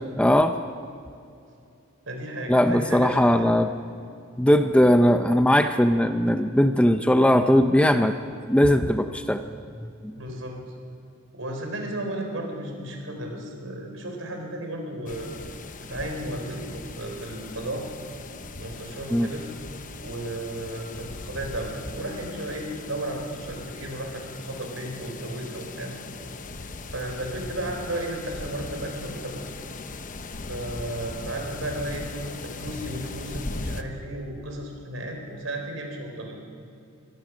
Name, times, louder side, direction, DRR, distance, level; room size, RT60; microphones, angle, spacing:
voice 1, 0.2-0.6 2.5-3.7 4.4-8.1 8.4-9.4 9.8-10.1 19.1-19.3, equal, 5° left, 7 dB, 0.6 m, -19 dB
voice 2, 2.1-3.6 10.2-10.6 11.3-15.3 15.8-17.9 18.6-19.5 20.0-26.0 26.6-29.4 30.5-32.1 32.4-36.3, right 1 dB, 85° right, 3 dB, 4.5 m, -34 dB
sound 1, 15.1-33.8, left 3 dB, 40° left, 0.9 m, -39 dB
24.0 x 17.5 x 6.3 m, 2.6 s
head